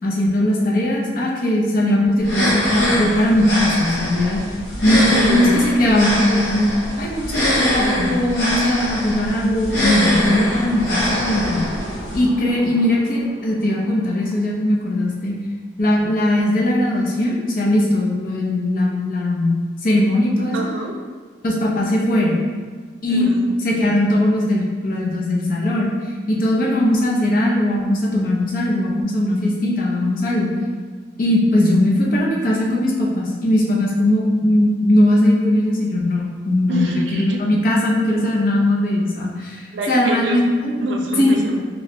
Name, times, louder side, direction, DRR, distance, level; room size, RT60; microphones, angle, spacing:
voice 1, 0.0-4.4 4.8-6.7 7.0-11.6 12.1-15.3 15.8-20.6 21.4-22.4 23.0-23.2 23.6-25.9 26.3-30.5 31.2-39.6 39.9-40.7 41.2-41.4, left 1 dB, 50° left, -3 dB, 0.6 m, -19 dB
sound 1, 2.2-12.2, left 1 dB, 80° left, 1.2 m, -23 dB
voice 2, 5.1-5.6 20.5-21.0 23.1-23.5 36.7-37.4 39.7-40.4 40.8-41.6, right 1 dB, 80° right, 2 dB, 0.5 m, -26 dB
Car passing by / Engine, 9.2-15.0, equal, 10° right, 0.7 m, -36 dB
3.1 x 3.0 x 2.7 m, 1.5 s
head